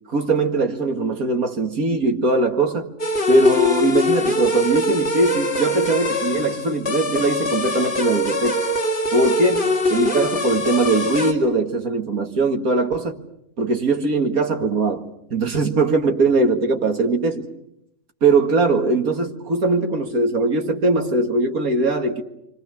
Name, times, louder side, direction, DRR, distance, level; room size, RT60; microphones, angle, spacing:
voice 1, 0.1-2.9 3.3-8.6 9.1-13.2 13.6-17.5 18.2-22.2, right 2 dB, 80° right, 2.4 m, -20 dB
sound 1, 3.0-11.3, left 1 dB, 45° left, 3.2 m, -22 dB
29.0 x 25.5 x 6.4 m
omnidirectional pair, 1.5 m